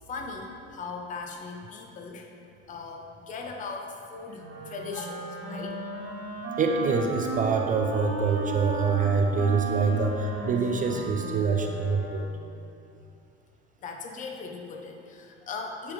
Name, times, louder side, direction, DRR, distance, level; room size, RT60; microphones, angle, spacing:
voice 1, 0.1-2.3 2.7-5.8 13.8-15.9, left 4 dB, 25° left, 2 dB, 0.6 m, -38 dB
Wind instrument woodwind instrument, 4.4-12.4, right 2 dB, 50° right, 1.6 m, -35 dB
voice 2, 6.6-12.3, right 5 dB, 25° right, 3 dB, 0.4 m, -25 dB
9.1 x 3.4 x 5.0 m, 2.6 s
cardioid pair, 130°, 30 cm